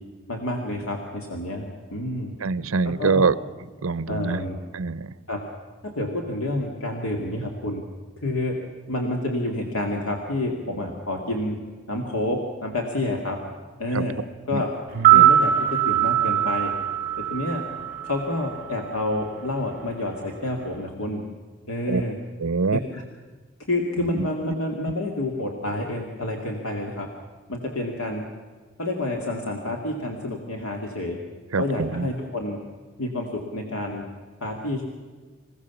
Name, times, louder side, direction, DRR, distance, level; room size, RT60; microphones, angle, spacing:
voice 1, 0.3-2.3 2.8-3.3 4.1-4.6 5.3-5.4 5.8-7.8 8.2-8.6 8.9-11.6 11.9-13.4 13.8-14.2 14.5-14.7 15.1-16.7 17.2-17.6 18.0-21.2 21.7-22.2 22.7-23.0 23.7-27.1 27.5-28.2 28.8-31.2 31.6-32.6 33.0-34.0 34.4-34.8, left 1 dB, 90° left, 1 dB, 2.3 m, -28 dB
voice 2, 2.4-3.3 3.8-4.4 4.7-5.1 13.9-14.0 14.5-14.6 15.0-15.3 21.9-22.0 22.4-22.8 24.0-24.5 31.5-32.1, right 4 dB, 80° right, 17 dB, 0.7 m, -25 dB
sound 1, 14.9-19.1 19.3-19.4, right 11 dB, 40° right, 2.0 m, -21 dB
26.5 x 16.5 x 7.1 m, 1.4 s
head